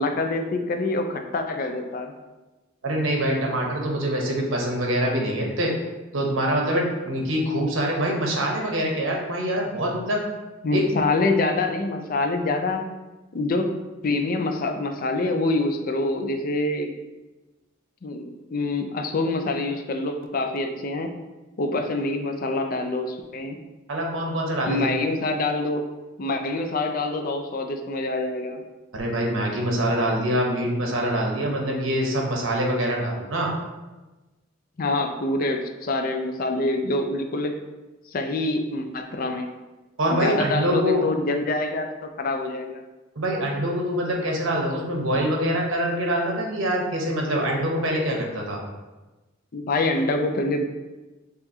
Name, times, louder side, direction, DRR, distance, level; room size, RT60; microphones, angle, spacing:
voice 1, 0.0-2.1 10.6-12.9 13.3-13.7 14.0-16.9 18.0-21.1 21.6-23.6 24.7-25.9 26.2-28.6 34.8-37.5 38.1-39.5 40.1-42.8 49.5-50.6, left 2 dB, 45° left, 5 dB, 0.4 m, -26 dB
voice 2, 2.8-5.7 6.1-10.2 10.7-10.8 23.9-24.9 28.9-33.5 40.0-41.0 43.2-48.6, equal, 85° right, 0 dB, 1.0 m, -24 dB
6.7 x 2.5 x 2.8 m, 1.1 s
head